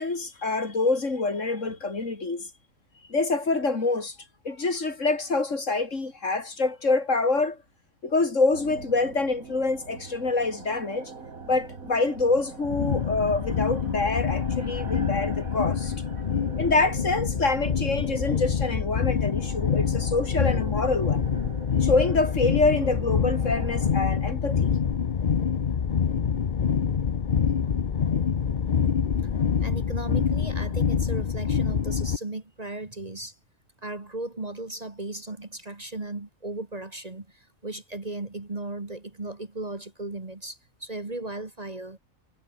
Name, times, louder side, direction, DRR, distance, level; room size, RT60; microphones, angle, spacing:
voice 1, 0.0-2.5 3.1-4.2 4.5-7.6 8.0-11.1 11.5-15.9 16.6-21.2 21.8-24.7, left 3 dB, 65° left, 3.5 m, -26 dB
sound 1, 8.5-23.9, right 4 dB, 85° right, 2.9 m, -43 dB
sound 2, 12.6-32.2, left 7 dB, 40° left, 0.9 m, -26 dB
voice 2, 29.6-33.4 33.8-42.0, right 2 dB, 30° right, 1.9 m, -36 dB
omnidirectional pair, 1.4 m